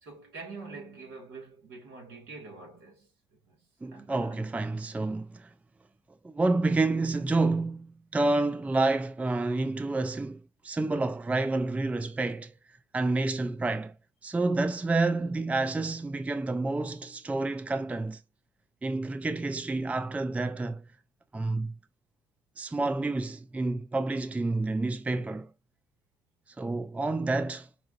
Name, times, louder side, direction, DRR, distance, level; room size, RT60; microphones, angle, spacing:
voice 1, 0.0-4.5, right 4 dB, 70° right, 2.0 m, -46 dB
voice 2, 3.8-5.5 6.2-12.5 12.9-13.9 14.2-18.2 18.8-20.8 21.3-21.7 22.6-25.5 26.6-27.7, right 2 dB, 10° right, 0.4 m, -29 dB
5.3 x 2.3 x 2.6 m
figure-of-eight pair, 50°, 12 cm